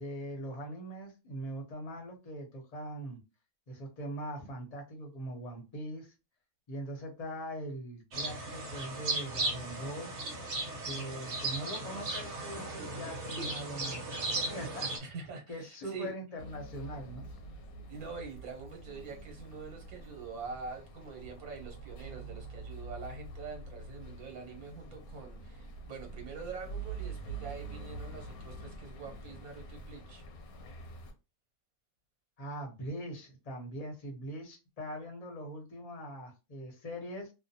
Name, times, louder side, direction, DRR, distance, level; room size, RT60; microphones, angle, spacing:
voice 1, 0.0-3.2 3.7-6.1 6.7-10.2 10.8-14.9 15.5-17.3 32.4-37.3, right 1 dB, 35° left, 0.8 m, -41 dB
sound 1, 8.1-15.0, right 2 dB, 55° right, 1.1 m, -36 dB
voice 2, 15.0-16.1 17.9-30.2, right 5 dB, 80° right, 1.3 m, -45 dB
sound 2, 16.4-31.1, right 3 dB, 80° left, 1.2 m, -46 dB
2.8 x 2.1 x 2.6 m
omnidirectional pair, 1.5 m